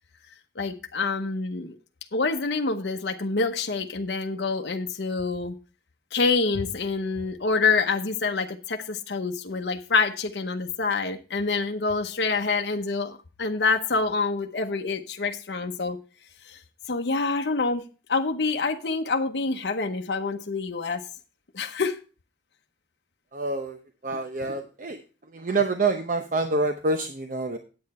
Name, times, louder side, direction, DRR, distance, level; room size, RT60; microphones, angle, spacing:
voice 1, 0.6-1.7 2.1-5.5 6.1-16.0 16.5-16.6 16.9-21.0 21.5-22.0, left 4 dB, 70° left, 4 dB, 0.8 m, -26 dB
voice 2, 23.3-23.8 24.0-25.0 25.3-27.6, right 3 dB, 50° right, 6 dB, 0.8 m, -26 dB
8.8 x 8.7 x 4.2 m, 0.33 s
head